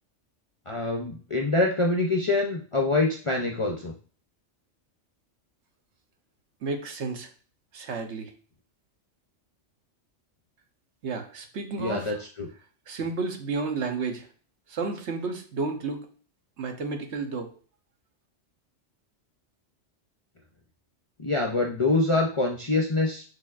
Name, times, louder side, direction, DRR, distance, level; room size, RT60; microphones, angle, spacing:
voice 1, 0.7-3.9 11.8-12.5 21.2-23.2, left 2 dB, 40° left, 0 dB, 0.4 m, -25 dB
voice 2, 6.6-7.3 7.7-8.3 11.0-12.2 12.9-14.3 14.7-16.1 16.6-17.5, right 4 dB, 70° right, 5 dB, 1.1 m, -31 dB
6.5 x 3.3 x 2.4 m, 0.41 s
omnidirectional pair, 1.2 m